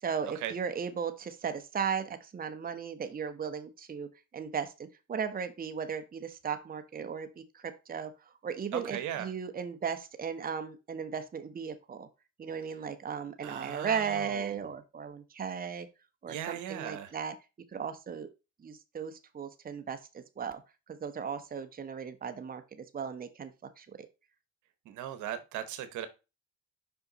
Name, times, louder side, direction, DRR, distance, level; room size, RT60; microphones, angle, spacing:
voice 1, 0.0-4.1 4.3-8.1 8.4-12.1 12.4-15.9 16.2-17.3 17.7-18.3 18.6-20.6 20.9-23.5 23.8-24.1, right 6 dB, 30° right, 8 dB, 0.9 m, -36 dB
voice 2, 8.7-9.3 13.4-14.5 16.3-17.1 24.9-26.1, right 10 dB, 70° right, 11 dB, 1.1 m, -38 dB
5.5 x 4.5 x 4.0 m, 0.28 s
supercardioid pair, 70°, 31 cm